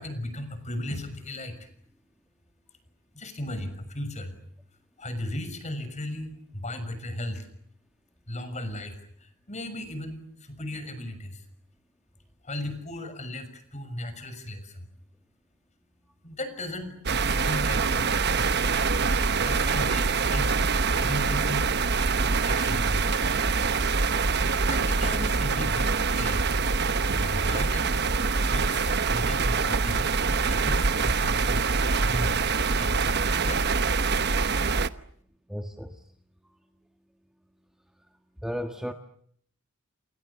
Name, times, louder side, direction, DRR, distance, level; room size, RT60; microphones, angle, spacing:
voice 1, 0.0-1.7 2.7-2.8 3.1-4.4 4.7-7.5 8.3-11.5 12.4-14.9 16.2-18.4 19.2-21.7 22.4-23.3 24.7-26.6 27.1-31.6 32.0-34.0, left 1 dB, 35° left, 10 dB, 6.5 m, -36 dB
sound 1, 17.1-34.9, right 4 dB, 50° right, 1.1 m, -25 dB
voice 2, 35.5-36.0 38.4-38.9, equal, ahead, 5 dB, 1.6 m, -33 dB
29.0 x 29.0 x 6.9 m, 0.66 s
head